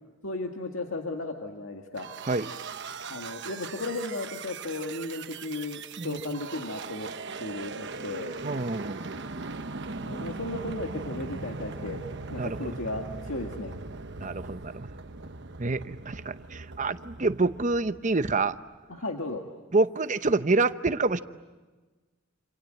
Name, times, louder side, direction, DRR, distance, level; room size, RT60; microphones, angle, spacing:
voice 1, 0.2-2.1 3.1-7.1 7.4-8.3 10.0-12.0 12.3-13.8 18.9-19.4, left 2 dB, 90° left, 2 dB, 1.9 m, -35 dB
sound 1, 1.9-18.6, right 4 dB, 60° right, 1.1 m, -39 dB
voice 2, 8.4-9.1 12.3-12.7 14.2-14.9 15.6-18.6 19.7-21.2, right 3 dB, 35° right, 12 dB, 0.8 m, -27 dB
28.0 x 27.5 x 7.7 m, 1.3 s
head